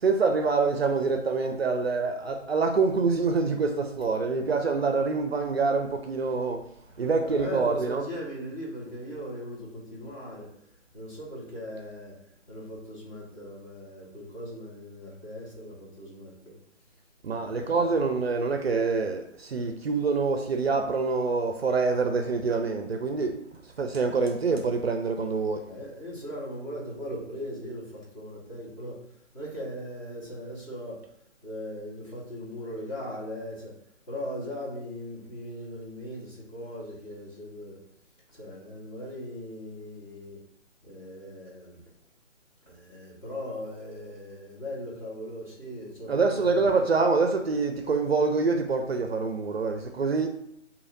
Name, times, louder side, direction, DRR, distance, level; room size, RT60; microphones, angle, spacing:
voice 1, 0.0-6.7 7.0-8.0 17.2-23.4 23.8-25.6 46.1-50.3, right 4 dB, 55° right, 0.5 m, -26 dB
voice 2, 6.9-10.7 10.9-12.2 12.5-16.6 17.4-18.1 25.6-31.0 31.4-33.8 34.1-37.8 38.3-40.4 40.8-41.8 42.7-47.0, equal, 25° left, 1.5 m, -39 dB
6.2 x 2.8 x 2.6 m
figure-of-eight pair, 150°, 38 cm